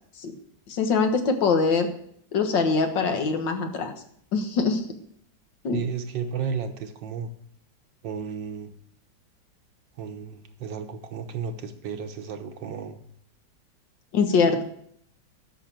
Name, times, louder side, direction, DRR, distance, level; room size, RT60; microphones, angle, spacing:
voice 1, 0.7-1.9 2.3-3.9 4.3-4.9 5.6-5.8 14.1-14.6, left 4 dB, 80° left, 6 dB, 2.0 m, -23 dB
voice 2, 5.7-7.3 8.0-8.7 10.0-13.0, right 6 dB, 85° right, 7 dB, 1.8 m, -33 dB
11.5 x 6.2 x 7.4 m, 0.67 s
omnidirectional pair, 2.0 m